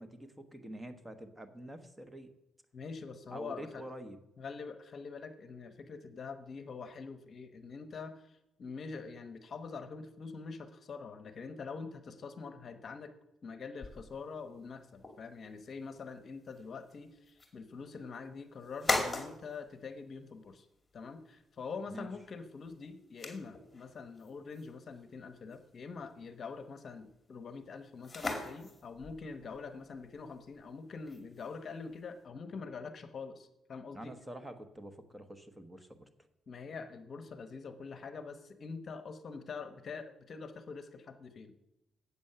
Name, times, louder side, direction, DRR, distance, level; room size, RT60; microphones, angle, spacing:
voice 1, 0.0-2.3 3.3-4.2 21.9-22.1 33.9-36.1, right 1 dB, 10° right, 9 dB, 1.0 m, -46 dB
voice 2, 2.7-3.8 4.4-13.1 13.4-20.7 20.9-34.1 36.5-41.6, left 4 dB, 50° left, 10 dB, 0.9 m, -45 dB
sound 1, 13.8-32.2, left 3 dB, 20° left, 2.3 m, -43 dB
8.3 x 7.0 x 6.7 m, 0.89 s
cardioid pair, 90°, 0 cm